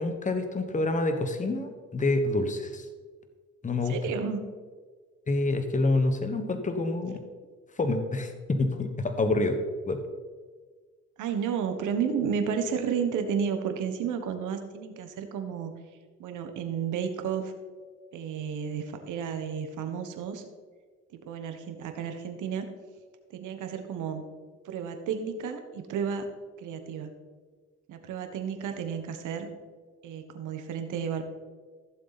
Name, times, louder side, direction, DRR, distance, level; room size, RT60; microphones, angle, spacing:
voice 1, 0.0-2.8 3.6-4.0 5.3-7.2 7.8-9.6 9.9-10.0, left 2 dB, 25° left, 7 dB, 1.3 m, -27 dB
voice 2, 3.7-4.4 11.2-15.7 16.2-17.5 18.1-20.4 21.1-22.7 23.3-24.2 24.6-26.3 26.6-27.1 27.9-29.5 30.0-31.2, right 7 dB, 85° right, 7 dB, 1.4 m, -32 dB
15.0 x 7.4 x 4.2 m, 1.5 s
cardioid pair, 90°, 30 cm